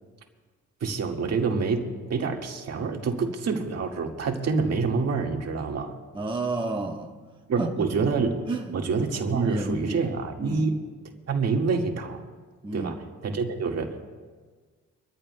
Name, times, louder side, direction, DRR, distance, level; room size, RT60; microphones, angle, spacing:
voice 1, 0.8-6.0 7.5-8.4 8.7-10.8 11.3-12.3 12.7-14.2, right 4 dB, 55° right, 2 dB, 1.9 m, -27 dB
voice 2, 6.1-7.1 7.6-7.9 8.5-8.7 9.2-10.1 10.4-10.7 12.6-13.0, right 3 dB, 15° right, 0 dB, 1.2 m, -30 dB
25.5 x 14.0 x 2.2 m, 1.5 s
cardioid pair, 90°, 30 cm